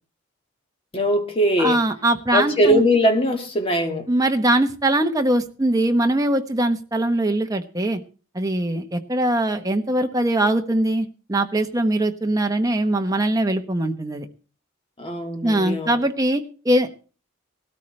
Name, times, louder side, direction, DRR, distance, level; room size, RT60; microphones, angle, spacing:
voice 1, 0.9-1.8 2.3-4.1 15.0-16.0, equal, 30° left, 1.6 m, -21 dB
voice 2, 1.6-2.8 4.1-8.0 8.3-14.3 15.4-17.0, right 1 dB, 20° right, 1.0 m, -21 dB
18.5 x 13.0 x 3.2 m
head